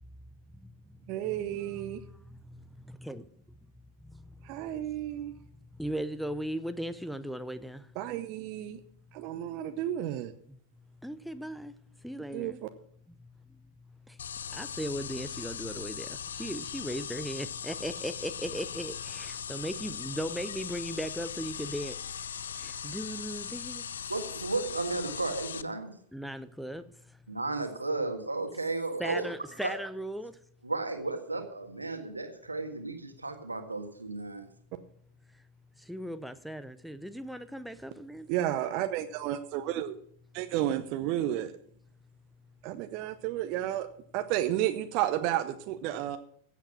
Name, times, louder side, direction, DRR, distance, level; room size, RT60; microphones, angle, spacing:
voice 1, 0.5-3.2 4.0-4.7 5.6-8.0 8.8-8.9 9.1-9.6 10.5-12.6 13.2-23.9 26.1-27.2 29.0-30.4 35.3-35.5 35.8-38.4, equal, ahead, 0.6 m, -39 dB
voice 2, 1.1-2.0 4.4-5.3 8.0-8.8 9.1-10.3 12.3-12.7 38.3-40.0 40.3-41.5 42.6-43.9 44.1-46.2, right 12 dB, 45° right, 0.8 m, -32 dB
sound 1, 14.2-25.6, left 8 dB, 65° left, 0.4 m, -39 dB
voice 3, 24.1-25.9 27.3-29.3 29.6-29.8 30.6-34.4, right 3 dB, 80° right, 1.8 m, -34 dB
15.5 x 8.2 x 5.8 m
figure-of-eight pair, 90°, 0 cm